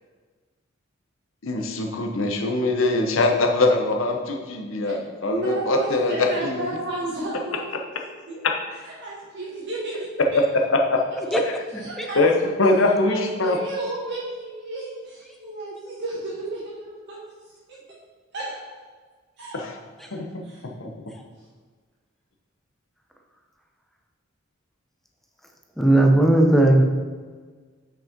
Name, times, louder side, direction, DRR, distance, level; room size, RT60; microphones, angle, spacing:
voice 1, 1.4-6.1 6.4-6.7 8.4-8.5 10.7-11.0 12.2-12.3 12.6-13.6 19.5-19.8 20.1-20.3 20.8-20.9, left 2 dB, 75° left, 3 dB, 0.9 m, -22 dB
voice 2, 5.3-7.6 8.0-8.4 8.8-10.4 11.8-12.2 12.8-17.2 18.3-18.6 19.4-19.6 20.4-20.6, right 2 dB, 60° right, -6 dB, 1.8 m, -32 dB
voice 3, 11.7-12.1 12.8-12.9 25.8-26.8, right 1 dB, ahead, 2 dB, 0.8 m, -18 dB
6.0 x 5.5 x 5.2 m, 1.5 s
head